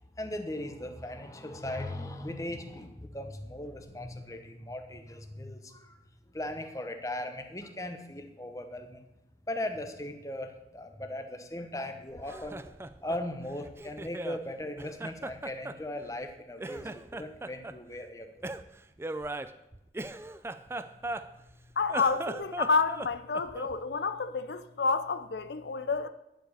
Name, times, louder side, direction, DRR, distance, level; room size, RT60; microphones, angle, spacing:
voice 1, 0.2-6.0 6.3-9.0 9.5-12.7 13.0-18.3, left 1 dB, 20° left, 1.0 m, -38 dB
Laughter, 12.1-14.4 14.8-16.3 16.6-17.8 18.4-21.5 21.8-23.8, right 2 dB, 15° right, 0.4 m, -39 dB
voice 2, 21.8-26.1, left 4 dB, 75° left, 0.6 m, -29 dB
11.0 x 7.8 x 6.5 m
head